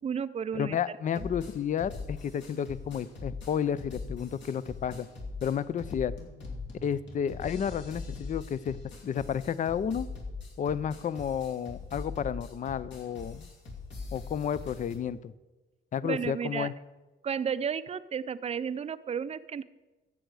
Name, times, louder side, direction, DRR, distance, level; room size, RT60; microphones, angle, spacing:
voice 1, 0.0-0.8 1.2-1.3 16.0-16.7 17.2-19.6, right 7 dB, 30° right, 15 dB, 0.5 m, -33 dB
voice 2, 0.5-5.1 5.4-6.1 6.8-10.1 10.6-13.5 14.1-15.3 15.9-16.7, left 8 dB, 40° left, 17 dB, 0.5 m, -31 dB
sound 1, 1.2-15.0, left 4 dB, 65° left, 2.6 m, -41 dB
13.0 x 7.9 x 4.8 m, 1.1 s
cardioid pair, 90°, 20 cm